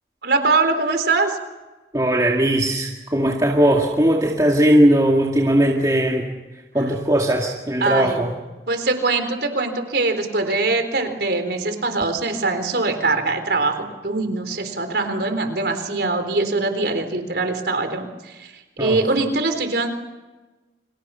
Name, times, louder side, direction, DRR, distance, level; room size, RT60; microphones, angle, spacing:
voice 1, 0.2-1.4 7.8-8.2 8.7-19.9, right 3 dB, 70° right, 7 dB, 3.9 m, -22 dB
voice 2, 1.9-8.3 18.8-19.0, right 1 dB, 20° right, -1 dB, 2.3 m, -19 dB
30.0 x 26.0 x 5.8 m, 1.2 s
head